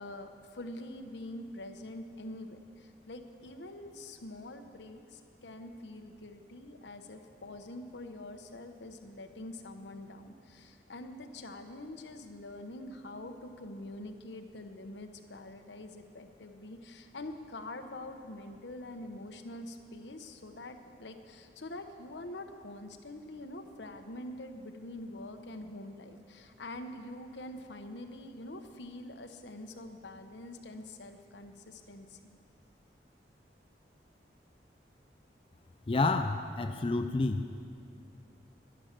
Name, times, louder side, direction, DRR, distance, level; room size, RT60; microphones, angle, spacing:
voice 1, 0.0-32.4, left 1 dB, 85° left, 6 dB, 1.0 m, -45 dB
voice 2, 35.9-37.4, left 3 dB, 30° left, 7 dB, 0.4 m, -29 dB
11.0 x 10.5 x 7.3 m, 2.4 s
head